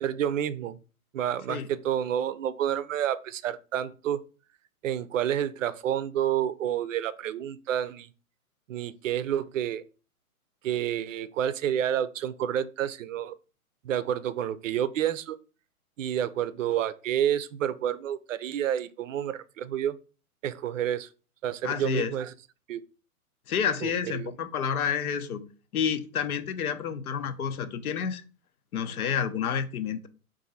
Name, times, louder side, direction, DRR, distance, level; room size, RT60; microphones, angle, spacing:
voice 1, 0.0-0.8 1.1-4.2 4.8-8.1 8.7-9.8 10.6-13.4 13.8-15.4 16.0-20.0 20.4-21.1 21.4-22.3 22.7-22.8 23.8-24.3, right 10 dB, 60° right, 0.5 m, -29 dB
voice 2, 21.6-22.1 23.5-25.4 25.7-28.2 28.7-30.1, left 7 dB, 75° left, 0.8 m, -29 dB
3.8 x 2.6 x 4.0 m
hypercardioid pair, 145°, 44 cm